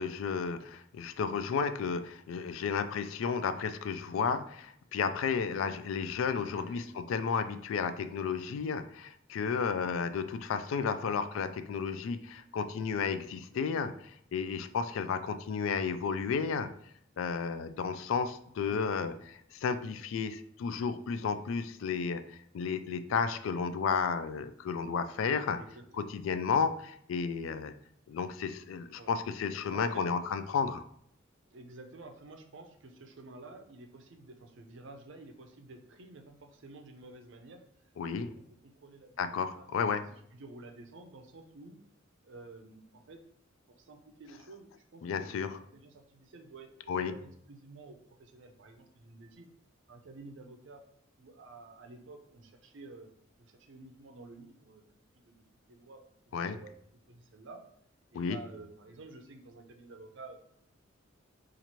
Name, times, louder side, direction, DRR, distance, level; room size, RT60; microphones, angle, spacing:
voice 1, 0.0-13.9 14.3-16.7 17.2-25.6 26.0-27.7 28.1-30.8 38.0-38.3 39.2-40.0 45.0-45.6 46.9-47.1 56.3-56.6 58.1-58.4, left 5 dB, 75° left, 10 dB, 0.3 m, -32 dB
voice 2, 6.4-6.9 11.0-11.1 13.5-13.6 18.7-18.8 23.2-23.4 25.6-26.1 28.9-29.1 29.7-30.1 31.5-37.6 38.1-39.7 40.1-41.8 42.2-43.2 43.7-49.5 49.9-50.8 51.2-53.1 53.4-54.8 55.1-56.7 57.1-57.6 58.1-60.4, right 2 dB, 65° right, 5 dB, 0.5 m, -51 dB
2.9 x 2.5 x 4.2 m, 0.69 s
head